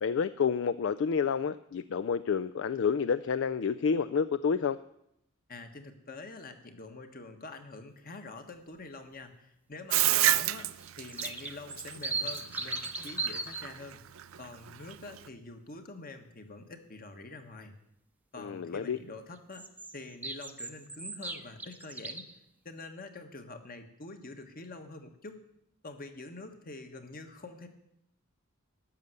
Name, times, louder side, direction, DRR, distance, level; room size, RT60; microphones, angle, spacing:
voice 1, 0.0-4.8 18.4-19.0, left 6 dB, 60° left, 14 dB, 0.4 m, -29 dB
voice 2, 5.5-10.7 11.0-14.0 14.4-17.7 18.3-19.6 19.9-22.2 22.6-25.4 25.8-27.7, left 3 dB, 45° left, 6 dB, 1.4 m, -46 dB
Bathtub (filling or washing), 9.9-15.3, right 14 dB, 70° right, 0.5 m, -30 dB
sound 1, 10.8-13.6 19.5-22.4, right 3 dB, 10° right, 0.7 m, -37 dB
12.0 x 6.6 x 9.4 m, 0.78 s
head